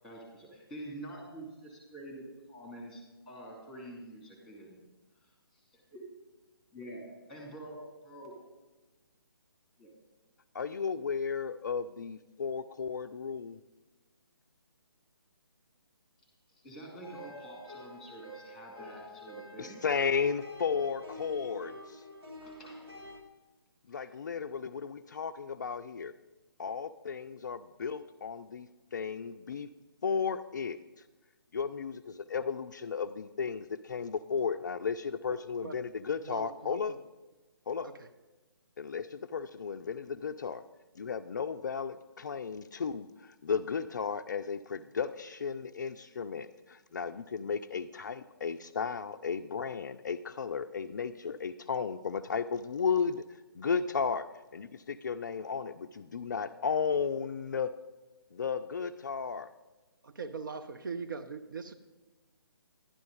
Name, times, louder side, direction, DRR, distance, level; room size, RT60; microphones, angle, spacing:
voice 1, 0.0-4.8 5.2-6.1 6.7-8.3 9.8-9.9 16.6-19.8 22.4-22.9, right 1 dB, ahead, 0 dB, 2.6 m, -47 dB
voice 2, 10.5-13.6 19.6-22.0 23.9-26.1 26.6-29.7 30.0-30.8 31.5-37.0 37.7-37.9 38.8-40.6 41.0-57.7 58.3-59.5, left 6 dB, 50° left, 9 dB, 0.3 m, -34 dB
sound 1, 17.0-23.2, left 1 dB, 85° right, 1.6 m, -48 dB
voice 3, 35.3-35.8 36.2-37.0 37.8-38.1 60.0-61.7, right 4 dB, 55° right, 8 dB, 0.6 m, -41 dB
11.5 x 10.5 x 4.0 m, 1.1 s
figure-of-eight pair, 140°, 13 cm